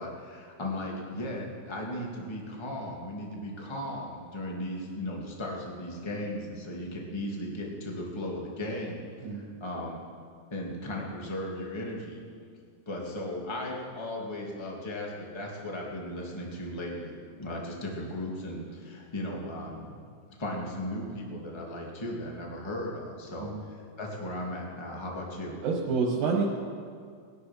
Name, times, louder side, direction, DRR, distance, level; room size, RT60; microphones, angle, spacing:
voice 1, 0.0-9.0 9.3-10.0 10.5-12.2 12.8-19.9 20.4-25.6, left 1 dB, 10° left, -2 dB, 1.7 m, -36 dB
voice 2, 9.2-9.5 23.4-23.7 25.6-26.4, right 5 dB, 85° right, -2 dB, 2.9 m, -28 dB
19.5 x 10.5 x 5.8 m, 2.2 s
omnidirectional pair, 3.3 m